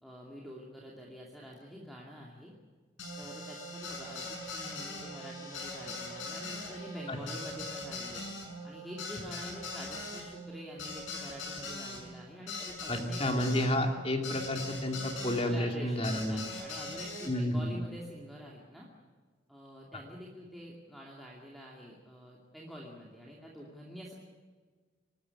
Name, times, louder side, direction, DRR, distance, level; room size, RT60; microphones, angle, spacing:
voice 1, 0.0-2.5 3.2-8.2 8.6-13.2 15.4-18.9 19.5-24.1, equal, ahead, -4 dB, 2.6 m, -46 dB
sound 1, 3.0-15.4 16.0-17.3, left 2 dB, 85° left, 7.0 m, -41 dB
voice 2, 12.9-16.4 17.3-17.8, left 1 dB, 30° left, 4 dB, 2.7 m, -31 dB
25.5 x 13.0 x 9.8 m, 1.5 s
head